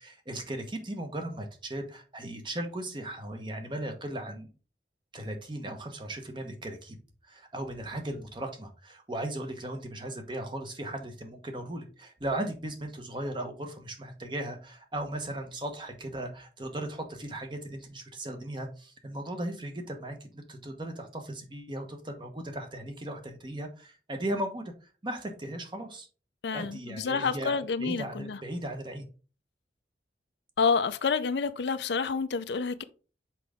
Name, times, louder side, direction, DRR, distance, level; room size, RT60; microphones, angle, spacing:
voice 1, 0.0-4.5 5.1-7.0 7.2-26.1 26.5-29.0, right 1 dB, 25° right, 1.0 m, -37 dB
voice 2, 26.4-28.4 30.6-32.8, left 5 dB, 80° left, 0.5 m, -28 dB
6.0 x 5.0 x 3.5 m
head